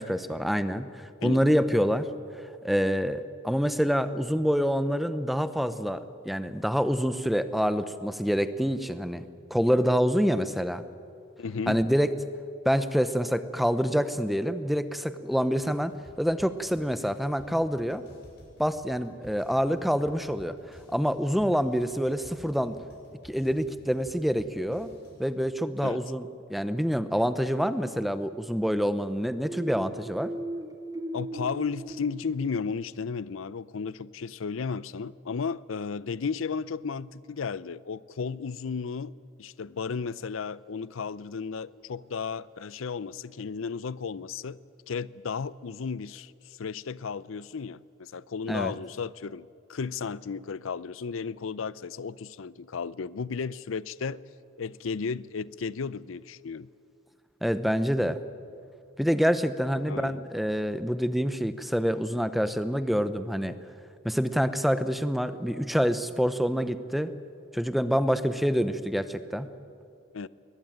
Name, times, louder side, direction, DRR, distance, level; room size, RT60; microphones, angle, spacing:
voice 1, 0.0-2.1 2.6-10.8 11.7-12.1 12.6-15.9 16.2-18.0 18.6-22.8 23.2-24.9 25.2-30.3 48.5-48.7 57.4-58.2 59.0-63.6 64.0-67.1 67.5-69.5, equal, ahead, 0.7 m, -26 dB
voice 2, 11.4-11.8 25.8-26.0 31.1-44.6 44.9-54.2 54.6-56.7 59.9-60.2 70.1-70.3, left 5 dB, 85° left, 0.5 m, -34 dB
sound 1, 15.6-25.3, equal, 55° left, 6.6 m, -54 dB
sound 2, 29.4-33.1, right 1 dB, 20° right, 1.8 m, -38 dB
21.5 x 20.0 x 9.3 m
head